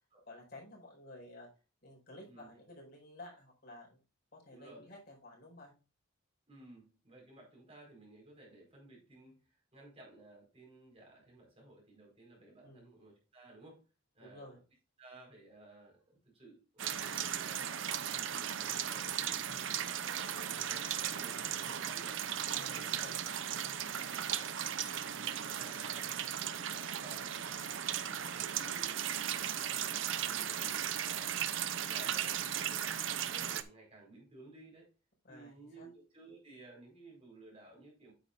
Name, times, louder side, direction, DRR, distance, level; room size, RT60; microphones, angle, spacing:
voice 1, 0.3-1.5 1.8-4.0 4.3-5.7 12.6-12.9 14.2-14.6 19.3-19.6 22.5-23.2 32.0-32.7 35.2-35.9, left 1 dB, 50° left, -2 dB, 4.8 m, -53 dB
voice 2, 4.5-4.9 6.5-13.8 14.1-14.5 15.0-19.4 19.8-23.2 23.9-24.5 25.0-27.7 28.2-31.4 31.8-34.9 35.3-38.1, right 2 dB, 30° right, -1 dB, 4.8 m, -56 dB
sound 1, 16.8-33.6, right 9 dB, 70° right, 0.7 m, -36 dB
9.2 x 8.4 x 2.5 m, 0.32 s
head